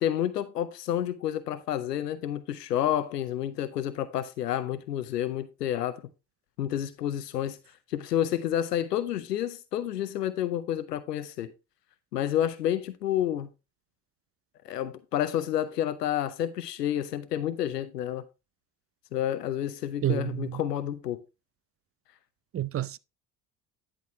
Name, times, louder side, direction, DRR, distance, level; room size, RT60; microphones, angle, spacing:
voice 1, 0.0-6.0 6.6-7.6 7.9-11.5 12.1-13.5 14.6-18.2 19.1-21.2, left 11 dB, 90° left, 0.7 m, -29 dB
voice 2, 20.0-20.6 22.5-23.0, right 12 dB, 30° right, 0.5 m, -29 dB
10.5 x 6.3 x 3.0 m
hypercardioid pair, 55°, 47 cm